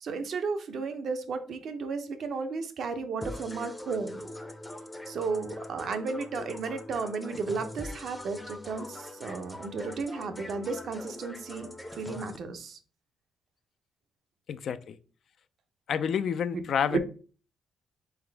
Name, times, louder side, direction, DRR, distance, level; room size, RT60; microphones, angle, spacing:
voice 1, 0.0-4.3 5.1-11.7 11.9-12.8 16.9-17.0, right 4 dB, 60° right, 0.6 m, -33 dB
sound 1, 3.2-12.4, left 1 dB, 10° left, 0.6 m, -42 dB
voice 2, 14.5-15.0 15.9-17.0, left 7 dB, 65° left, 0.4 m, -29 dB
3.9 x 3.5 x 3.4 m
cardioid pair, 90°, 0 cm